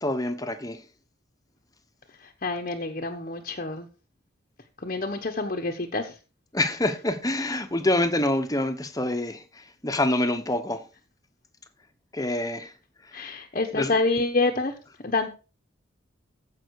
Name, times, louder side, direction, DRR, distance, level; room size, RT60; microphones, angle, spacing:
voice 1, 0.0-0.8 6.5-10.8 12.1-12.7 13.1-13.3 13.7-13.9, left 1 dB, 20° left, 1.1 m, -26 dB
voice 2, 2.1-3.9 4.8-6.2 13.1-15.3, left 3 dB, 40° left, 1.0 m, -28 dB
15.0 x 5.7 x 4.7 m
head